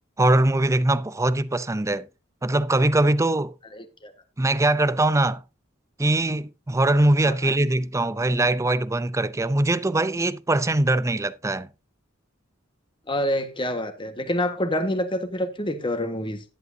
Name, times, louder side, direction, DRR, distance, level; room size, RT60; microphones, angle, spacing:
voice 1, 0.2-2.1 2.4-3.5 4.4-5.4 6.0-11.7, right 2 dB, 15° right, 0.5 m, -22 dB
voice 2, 3.7-4.1 7.2-7.5 13.1-16.4, left 1 dB, 25° left, 1.5 m, -27 dB
11.0 x 11.0 x 2.7 m
head